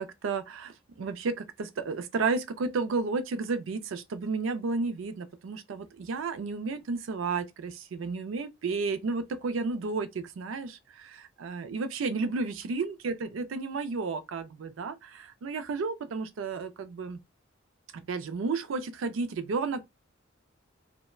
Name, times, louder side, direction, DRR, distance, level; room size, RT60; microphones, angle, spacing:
voice 1, 0.0-17.2 17.9-19.8, right 4 dB, 80° right, 0.4 m, -32 dB
3.2 x 2.0 x 2.3 m
head